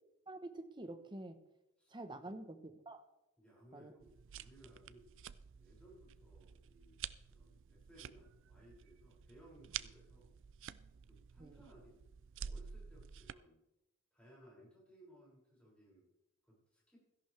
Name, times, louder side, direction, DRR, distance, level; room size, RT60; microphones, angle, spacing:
voice 1, 0.3-1.4 1.9-3.0 3.7-3.9 11.4-11.6, right 2 dB, 20° right, 7 dB, 1.1 m, -48 dB
voice 2, 3.4-5.2 5.6-7.0 7.3-10.3 11.1-12.0 12.3-13.6 14.1-16.1 16.4-17.0, right 1 dB, 5° left, -5 dB, 6.4 m, -62 dB
sound 1, 4.0-13.3, right 8 dB, 60° right, 0.4 m, -50 dB
16.5 x 14.0 x 3.4 m, 0.91 s
head